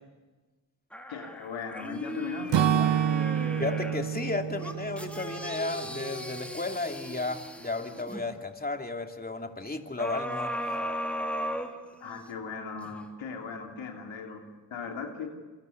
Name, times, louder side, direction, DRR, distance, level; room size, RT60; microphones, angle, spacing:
sound 1, 0.9-4.1 4.6-8.2 10.0-12.3 12.8-12.9, equal, 5° left, 3.6 m, -37 dB
voice 1, 1.1-3.1 12.0-15.3, left 5 dB, 90° left, 2 dB, 3.3 m, -38 dB
Acoustic guitar / Strum, 2.5-6.5, right 9 dB, 70° right, 0.8 m, -29 dB
voice 2, 3.6-10.6, left 3 dB, 20° left, 4 dB, 2.8 m, -33 dB
28.0 x 24.0 x 8.2 m, 1.3 s
cardioid pair, 50°, 45 cm